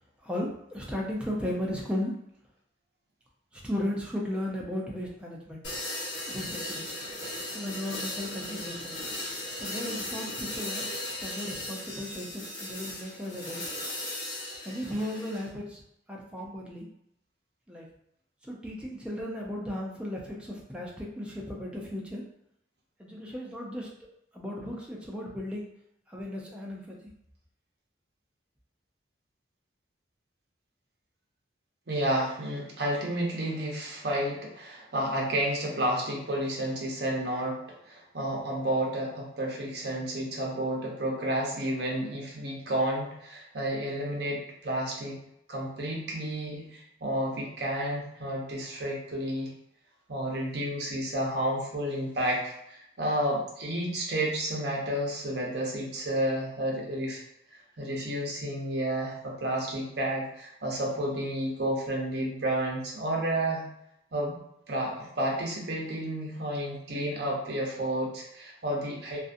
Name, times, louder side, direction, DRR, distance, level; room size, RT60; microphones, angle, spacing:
voice 1, 0.2-2.1 3.6-5.6 6.3-6.9 7.5-8.9 9.6-10.9 11.2-13.8 14.6-15.8 16.1-16.8 17.7-17.9 18.4-22.2 23.0-23.9 24.3-25.7 26.1-27.0, left 1 dB, 5° right, -3 dB, 0.4 m, -35 dB
sound 1, 5.6-15.5, left 1 dB, 65° left, 0.8 m, -37 dB
voice 2, 31.9-37.6 37.8-45.2 45.5-49.5 50.1-57.2 57.8-63.7 64.1-64.4 64.7-69.2, right 1 dB, 60° right, -2 dB, 0.7 m, -31 dB
2.5 x 2.5 x 2.5 m, 0.76 s
head